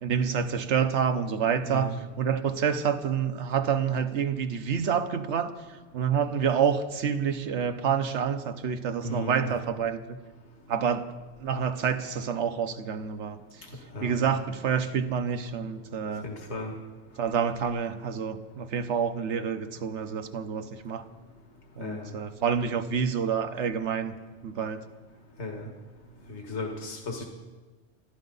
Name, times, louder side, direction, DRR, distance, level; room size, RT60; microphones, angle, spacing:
voice 1, 0.0-5.5 5.9-10.2 10.7-11.1 11.4-13.4 14.0-16.3 17.2-21.1 21.8-24.2 24.4-24.8, right 7 dB, 75° right, 1.3 m, -28 dB
voice 2, 1.7-2.0 9.0-9.5 13.9-14.2 16.2-16.7 21.8-22.1 25.4-25.6 26.3-27.2, left 1 dB, 75° left, 2.0 m, -35 dB
26.5 x 12.5 x 4.0 m
omnidirectional pair, 1.2 m